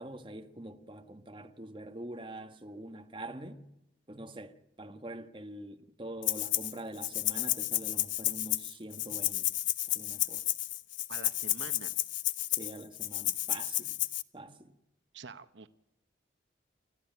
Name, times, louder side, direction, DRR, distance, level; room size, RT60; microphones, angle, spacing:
voice 1, 0.0-3.6 4.1-9.5 9.9-10.4 12.6-14.0 14.3-14.7, right 1 dB, 25° right, 1.5 m, -45 dB
Rattle (instrument), 6.2-6.7 7.0-14.2, left 15 dB, 85° left, 0.8 m, -32 dB
voice 2, 11.1-11.9 15.1-15.7, right 4 dB, 80° right, 1.0 m, -46 dB
29.5 x 14.0 x 9.3 m
head